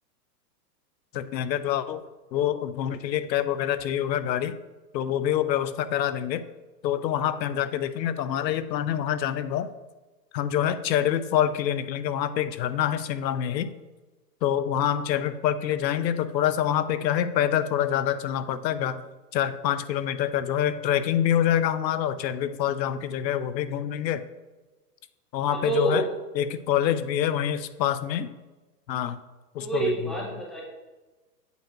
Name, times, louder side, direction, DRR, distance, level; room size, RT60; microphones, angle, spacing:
voice 1, 1.1-2.0 2.3-4.5 4.9-6.4 6.8-9.7 10.3-13.7 14.4-19.0 19.3-24.2 25.3-26.1 26.3-28.3 28.9-29.2 29.5-30.1, left 10 dB, 85° left, 13 dB, 0.6 m, -26 dB
voice 2, 25.5-26.1 29.6-30.6, right 3 dB, ahead, -3 dB, 0.7 m, -27 dB
8.1 x 4.5 x 3.0 m, 1.2 s
hypercardioid pair, 145°, 50 cm